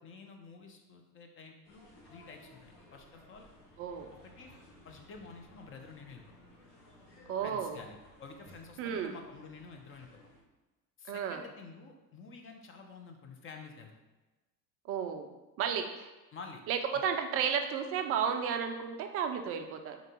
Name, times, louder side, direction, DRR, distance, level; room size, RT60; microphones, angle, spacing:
voice 1, 0.0-3.5 4.2-4.5 4.8-6.2 7.4-10.1 11.0-13.9 16.3-16.6 16.9-17.1, left 4 dB, 25° left, 3 dB, 0.5 m, -50 dB
sound 1, 1.6-10.4, left 1 dB, 55° left, 1.3 m, -58 dB
voice 2, 3.8-4.1 7.3-7.8 8.8-9.2 11.1-11.4 14.9-15.3 15.6-16.1 16.7-20.0, right 7 dB, 30° right, 6 dB, 0.4 m, -33 dB
3.8 x 3.0 x 3.6 m, 1.1 s
hypercardioid pair, 75°, 50 cm